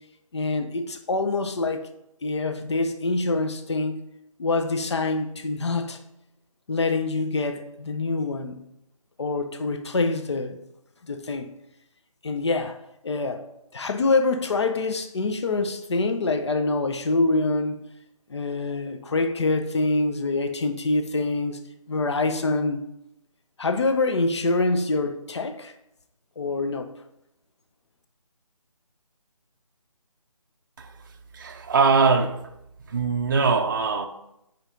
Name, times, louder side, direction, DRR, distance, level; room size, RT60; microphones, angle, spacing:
voice 1, 0.3-1.9 2.2-4.0 4.4-6.0 6.7-8.6 9.2-10.6 11.0-11.5 12.2-12.8 13.0-13.4 13.7-17.8 18.3-21.6 21.9-22.8 23.6-25.7 26.4-26.9, left 3 dB, 50° left, 0.8 m, -25 dB
voice 2, 30.8-32.4 32.9-34.1, right 4 dB, 35° right, 0.6 m, -22 dB
7.1 x 5.3 x 5.2 m
figure-of-eight pair, 155°, 18 cm